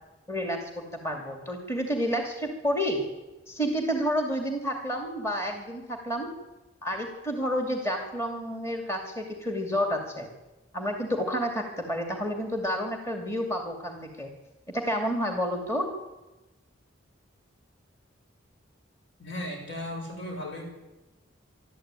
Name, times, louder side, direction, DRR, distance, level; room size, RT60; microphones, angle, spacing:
voice 1, 0.3-3.0 3.5-6.3 6.8-10.3 10.7-14.3 14.7-15.9, equal, 15° left, 3 dB, 2.4 m, -30 dB
voice 2, 19.2-20.6, left 1 dB, 70° left, 1 dB, 6.6 m, -36 dB
25.0 x 12.5 x 9.0 m, 1.1 s
head